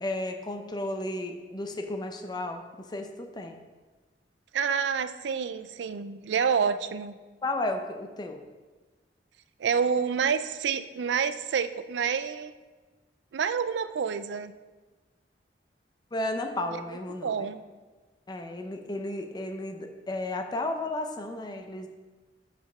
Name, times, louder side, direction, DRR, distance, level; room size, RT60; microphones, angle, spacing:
voice 1, 0.0-3.6 7.4-8.4 16.1-17.5 18.3-21.9, left 1 dB, 25° left, 5 dB, 0.6 m, -33 dB
voice 2, 4.5-7.2 9.6-12.5 13.3-14.5 17.2-17.6, right 6 dB, 75° right, 12 dB, 0.4 m, -28 dB
5.7 x 4.9 x 5.6 m, 1.3 s
head